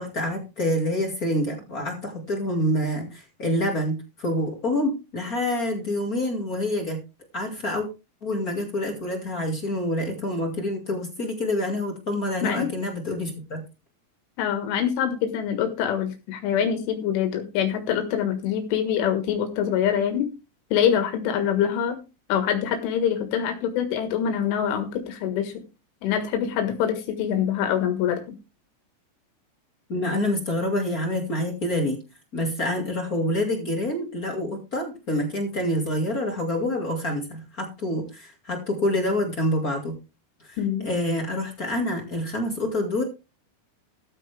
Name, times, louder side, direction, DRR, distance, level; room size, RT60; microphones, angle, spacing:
voice 1, 0.0-7.0 7.3-7.9 8.2-13.6 29.9-32.0 32.3-39.9 40.4-43.0, left 1 dB, 45° left, 2 dB, 1.1 m, -27 dB
voice 2, 14.4-20.3 20.7-22.0 22.3-25.5 26.0-28.4 40.6-40.9, left 9 dB, 80° left, 6 dB, 4.1 m, -25 dB
14.0 x 9.6 x 3.4 m, 0.29 s
omnidirectional pair, 5.6 m